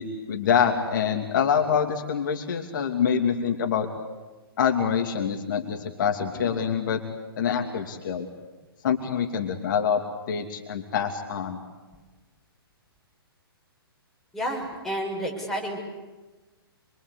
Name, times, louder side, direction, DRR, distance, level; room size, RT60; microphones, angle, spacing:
voice 1, 0.0-3.9 4.6-7.0 7.4-8.3 8.8-10.0 10.3-11.6, left 7 dB, 50° left, 4 dB, 2.8 m, -25 dB
voice 2, 14.3-15.9, equal, 5° left, -2 dB, 6.5 m, -30 dB
27.0 x 24.5 x 8.3 m, 1.2 s
figure-of-eight pair, 125°, 13 cm